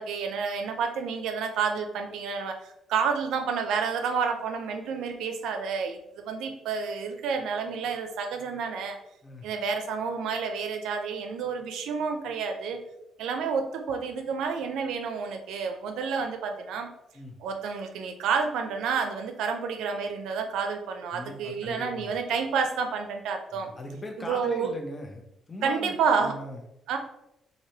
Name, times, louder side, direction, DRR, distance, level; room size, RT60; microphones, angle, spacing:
voice 1, 0.0-9.0 9.4-12.8 13.2-16.9 17.4-23.7 24.2-24.7 25.6-26.4 26.9-27.0, right 5 dB, 85° right, 5 dB, 0.4 m, -29 dB
voice 2, 21.1-22.1 23.5-26.6, left 1 dB, 30° left, 2 dB, 0.7 m, -40 dB
3.2 x 2.6 x 2.7 m, 0.85 s
cardioid pair, 90°, 0 cm